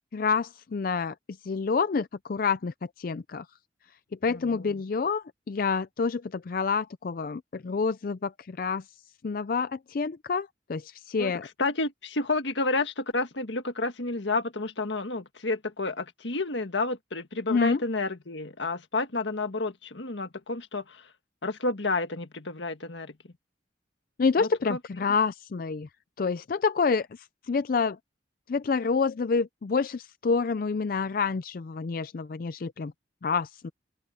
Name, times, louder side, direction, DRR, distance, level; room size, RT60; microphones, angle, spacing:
voice 1, 0.1-1.1 1.4-3.4 4.2-8.8 9.2-11.5 17.5-17.8 24.2-25.9 26.2-28.0 28.5-32.9 33.2-33.7, left 5 dB, 50° left, 0.4 m, -28 dB
voice 2, 4.3-4.7 11.2-11.3 11.6-21.0 21.4-23.1 24.4-24.8, left 3 dB, 80° left, 1.7 m, -30 dB
open air
head